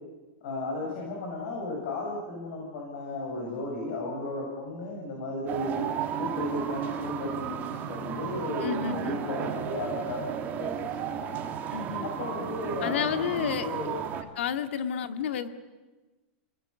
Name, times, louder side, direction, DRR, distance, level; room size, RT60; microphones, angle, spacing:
voice 1, 0.4-5.9 6.2-11.5 12.0-13.9, left 2 dB, 65° left, -1 dB, 7.4 m, -34 dB
sound 1, 5.5-14.2, right 9 dB, 30° right, 2.5 m, -34 dB
voice 2, 8.6-9.2 11.7-12.1 12.8-13.7 14.4-15.5, left 8 dB, 85° left, 9 dB, 2.0 m, -30 dB
29.0 x 20.5 x 8.4 m, 1.2 s
supercardioid pair, 150°, 6 cm